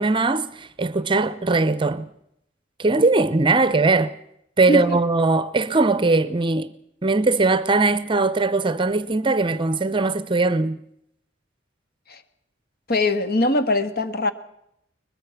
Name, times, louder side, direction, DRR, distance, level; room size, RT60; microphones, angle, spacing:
voice 1, 0.0-2.1 2.8-4.1 4.6-6.7 7.0-10.8, right 3 dB, 25° right, 0.8 m, -20 dB
voice 2, 12.9-14.3, left 1 dB, 50° left, 1.7 m, -21 dB
22.5 x 21.0 x 5.9 m
head